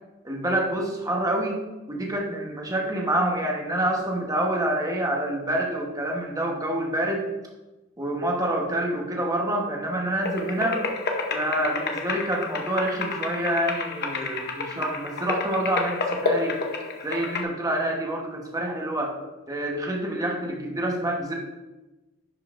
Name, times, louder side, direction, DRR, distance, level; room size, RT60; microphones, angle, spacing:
voice 1, 0.2-1.6 1.9-7.3 8.0-10.8 11.3-16.5 17.0-19.1 19.5-21.3, right 1 dB, 15° right, 0 dB, 1.1 m, -27 dB
sound 1, 10.2-17.4, left 4 dB, 55° left, 0.9 m, -30 dB
11.0 x 5.3 x 2.5 m, 1.1 s
head